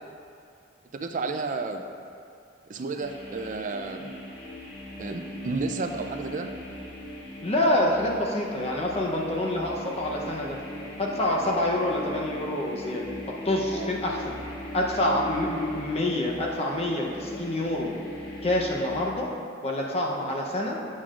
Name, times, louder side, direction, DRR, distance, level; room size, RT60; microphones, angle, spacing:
voice 1, 0.9-1.9 2.7-4.1 5.0-6.5 13.7-13.9, right 3 dB, 45° right, 6 dB, 0.4 m, -32 dB
sound 1, 3.0-19.1, left 1 dB, 55° left, 1.4 m, -39 dB
voice 2, 7.4-10.6 11.0-13.1 13.4-14.4 14.7-17.9 18.4-19.3 19.6-20.8, left 1 dB, 35° left, -1 dB, 0.8 m, -27 dB
8.5 x 7.4 x 2.5 m, 2.4 s
head